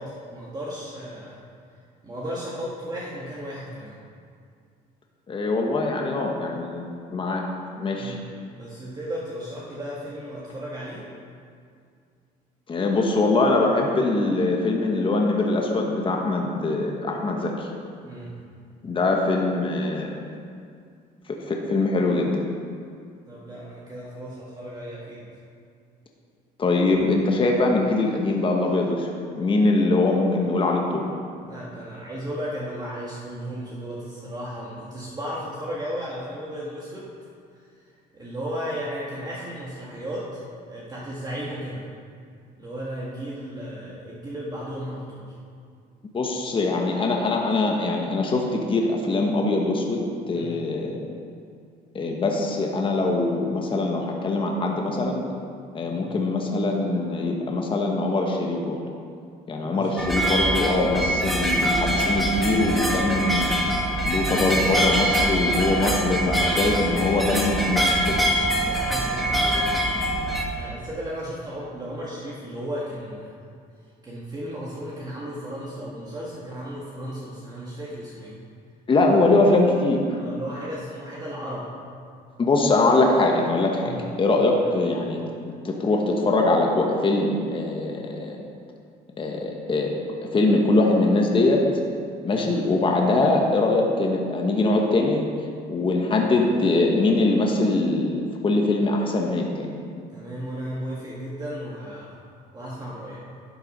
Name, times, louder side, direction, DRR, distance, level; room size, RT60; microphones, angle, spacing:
voice 1, 0.0-1.4 2.0-4.0 8.0-8.2 8.5-11.1 18.1-18.3 23.3-25.2 31.4-37.1 37.5-41.9 42.6-45.4 50.3-50.6 56.0-56.1 59.6-60.1 68.6-69.7 70.5-73.3 74.0-78.4 80.1-81.7 83.9-84.0 84.6-84.7 92.2-92.6 100.1-102.2 102.5-103.2, equal, 25° right, -5 dB, 1.6 m, -35 dB
voice 2, 5.3-7.4 7.8-8.2 12.7-17.7 18.8-20.1 21.3-22.3 26.6-31.0 46.1-51.1 51.9-55.2 55.7-58.8 59.5-63.6 64.0-68.2 78.9-80.2 82.4-85.2 85.6-88.4 89.2-89.9 90.2-91.8 92.2-95.2 95.7-99.7, left 2 dB, 30° left, 0 dB, 1.3 m, -22 dB
sound 1, 60.0-70.4, right 1 dB, ahead, 1.4 m, -24 dB
11.5 x 6.7 x 5.4 m, 2.3 s
cardioid pair, 110°, 17 cm